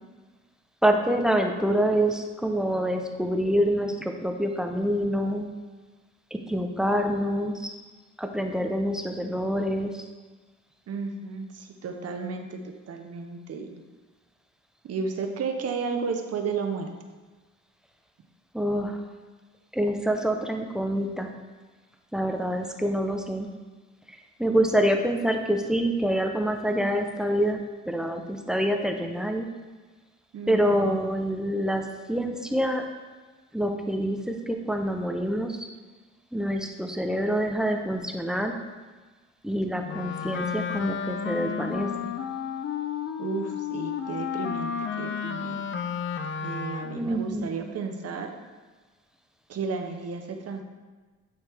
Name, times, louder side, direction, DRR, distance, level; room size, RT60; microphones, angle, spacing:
voice 1, 0.8-5.5 6.3-7.7 8.2-10.0 18.5-19.0 19.7-21.3 22.1-23.5 24.4-29.5 30.5-32.8 33.5-35.7 36.3-38.6 39.4-42.1 47.0-47.6, equal, ahead, 4 dB, 0.7 m, -26 dB
voice 2, 10.9-12.6 12.9-13.8 14.8-16.9 30.3-31.0 43.2-45.7 46.4-48.3 49.5-50.6, right 5 dB, 55° right, 5 dB, 0.8 m, -33 dB
Wind instrument woodwind instrument, 39.8-47.1, left 7 dB, 40° left, 0.4 m, -32 dB
8.2 x 4.3 x 3.4 m, 1.3 s
cardioid pair, 90°, 30 cm